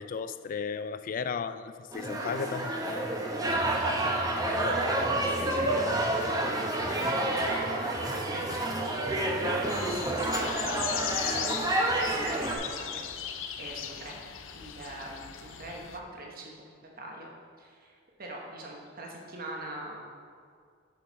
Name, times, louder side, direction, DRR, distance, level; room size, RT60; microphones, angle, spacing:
voice 1, 0.0-2.7, left 6 dB, 45° left, 0.3 m, -34 dB
sound 1, 1.9-12.6, right 1 dB, 20° right, 0.8 m, -29 dB
sound 2, 2.0-10.5, equal, 5° left, 0.8 m, -43 dB
voice 2, 3.8-6.4 6.8-11.5 11.8-13.1 13.6-14.2 14.5-17.3 17.6-20.0, right 1 dB, 50° right, 1.1 m, -43 dB
sound 3, 9.7-16.0, left 8 dB, 85° left, 0.6 m, -37 dB
6.8 x 6.4 x 5.6 m
head